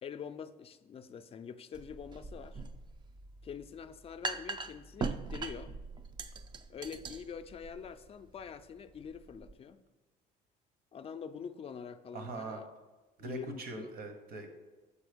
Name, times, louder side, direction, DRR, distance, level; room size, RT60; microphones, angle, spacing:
voice 1, 0.0-2.6 3.4-5.8 6.7-9.8 10.9-12.7 13.2-14.0, left 7 dB, 35° left, 10 dB, 0.4 m, -45 dB
sound 1, 1.7-9.5, right 4 dB, 25° right, 0.4 m, -42 dB
voice 2, 12.1-12.6 13.2-14.6, right 3 dB, 65° right, 7 dB, 1.0 m, -42 dB
7.0 x 4.4 x 5.0 m, 1.2 s
cardioid pair, 110°, 17 cm